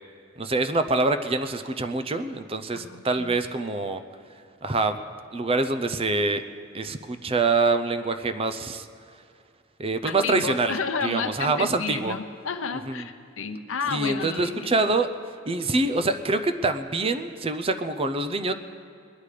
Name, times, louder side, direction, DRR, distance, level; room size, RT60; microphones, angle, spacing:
voice 1, 0.4-4.0 4.6-5.0 5.3-6.4 6.7-8.9 9.8-10.7 11.0-12.2 12.9-13.0 13.9-15.1 15.5-18.5, right 3 dB, 30° right, 9 dB, 0.6 m, -25 dB
voice 2, 2.7-3.4 10.0-14.7, left 5 dB, 80° left, 7 dB, 0.8 m, -31 dB
21.0 x 10.0 x 5.0 m, 2.3 s
head